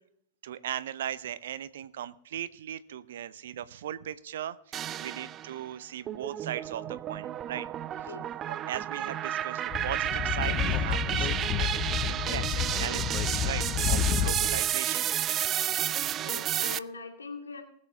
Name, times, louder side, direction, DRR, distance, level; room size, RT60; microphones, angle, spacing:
voice 1, 0.4-7.7 8.0-8.1 8.5-13.0 13.3-15.1 16.3-16.4, right 10 dB, 65° right, 16 dB, 0.7 m, -38 dB
sound 1, 4.7-5.6 6.1-16.8, right 11 dB, 30° right, 0.4 m, -31 dB
Speech / Wind, 9.7-14.6, left 9 dB, 35° left, 0.8 m, -30 dB
voice 2, 16.2-17.6, left 3 dB, 80° left, 3 dB, 2.3 m, -41 dB
20.0 x 7.6 x 4.0 m, 0.73 s
figure-of-eight pair, 95°, 0 cm